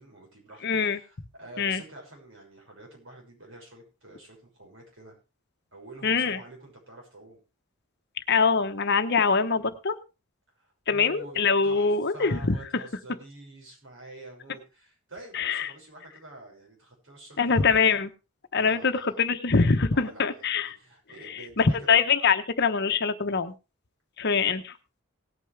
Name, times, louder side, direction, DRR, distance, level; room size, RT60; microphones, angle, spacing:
voice 1, 0.0-5.2 5.7-7.4 10.5-18.0 18.6-19.2 19.9-22.0, right 2 dB, 65° right, 0 dB, 6.1 m, -47 dB
voice 2, 0.6-1.0 1.6-1.8 6.0-6.4 8.3-10.0 10.9-12.6 15.3-15.7 17.4-18.1 18.5-20.8 21.3-23.5 24.2-24.7, left 5 dB, 55° left, 9 dB, 1.0 m, -24 dB
18.0 x 9.1 x 3.4 m, 0.29 s
head